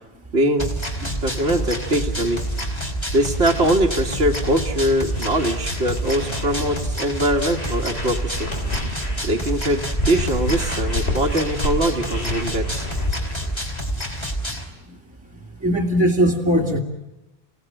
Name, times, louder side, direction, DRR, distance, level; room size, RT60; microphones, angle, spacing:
voice 1, 0.3-0.7 1.2-2.4 3.1-8.5 9.2-12.9, right 1 dB, 80° right, -2 dB, 2.0 m, -22 dB
sound 1, 0.6-14.6, right 1 dB, 25° left, 3.1 m, -28 dB
sound 2, 0.7-13.6, left 1 dB, 80° left, 4.3 m, -31 dB
voice 2, 15.6-16.8, equal, 5° right, -1 dB, 2.4 m, -19 dB
28.0 x 18.0 x 8.9 m, 0.98 s
omnidirectional pair, 1.1 m